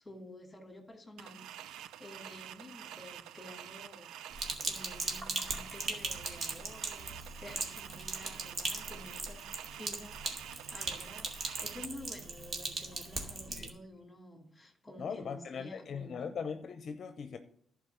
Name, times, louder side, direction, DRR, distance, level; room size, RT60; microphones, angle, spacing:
voice 1, 0.0-9.4 9.7-16.3, left 1 dB, 15° left, 2.7 m, -51 dB
sound 1, 1.2-11.9, right 11 dB, 85° right, 0.5 m, -48 dB
Sink (filling or washing), 4.3-13.7, right 3 dB, 45° right, 2.4 m, -39 dB
voice 2, 15.0-17.4, left 6 dB, 55° left, 0.7 m, -40 dB
11.5 x 4.9 x 8.2 m
cardioid pair, 90°, 0 cm